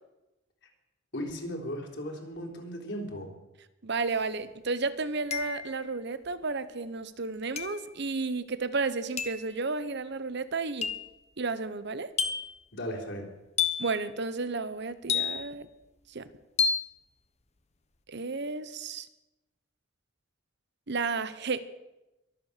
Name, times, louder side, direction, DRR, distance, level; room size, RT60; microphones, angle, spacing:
voice 1, 1.1-3.3 12.7-13.3, equal, 65° left, 1 dB, 3.6 m, -36 dB
voice 2, 3.8-10.9 11.4-12.1 13.8-15.7 16.1-16.3 18.1-19.1 20.9-21.6, right 4 dB, 60° right, 13 dB, 1.0 m, -32 dB
sound 1, 4.1-4.2 5.3-5.8 7.6-7.9 9.2-9.5 10.8-11.1 12.2-12.6 13.6-14.0 15.1-15.6 16.6-16.9, left 6 dB, 35° left, 1.0 m, -30 dB
23.0 x 8.5 x 6.8 m, 1.0 s
head